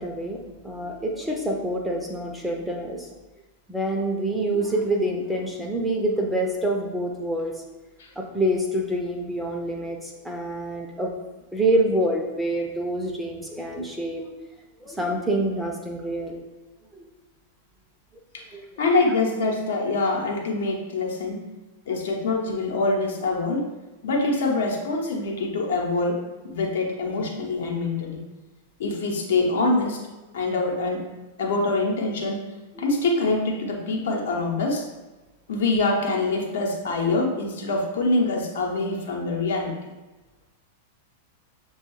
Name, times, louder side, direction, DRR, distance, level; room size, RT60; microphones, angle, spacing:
voice 1, 0.0-3.1 3.7-7.5 8.2-11.1 11.5-14.3 14.8-16.4 18.5-18.6 22.1-22.2 32.8-33.0, right 1 dB, 5° right, 0 dB, 0.7 m, -26 dB
voice 2, 18.8-21.4 21.9-23.7 24.0-28.2 28.8-30.0 30.3-31.1 31.4-32.4 32.8-34.8 35.5-39.7, left 3 dB, 60° left, 0 dB, 0.9 m, -25 dB
6.7 x 2.3 x 3.1 m, 1.2 s
figure-of-eight pair, 95°, 0 cm